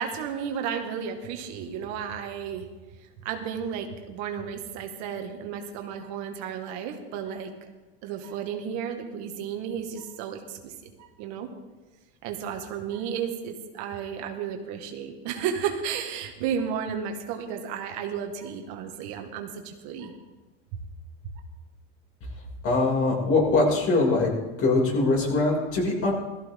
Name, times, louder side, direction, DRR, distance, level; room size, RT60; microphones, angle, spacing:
voice 1, 0.0-2.7 3.2-7.5 8.0-11.5 12.2-20.1, right 7 dB, 60° right, 4 dB, 1.9 m, -33 dB
voice 2, 22.6-24.3 24.6-26.1, left 3 dB, 45° left, -2 dB, 6.2 m, -22 dB
17.0 x 14.5 x 3.8 m, 1.2 s
supercardioid pair, 110°, 31 cm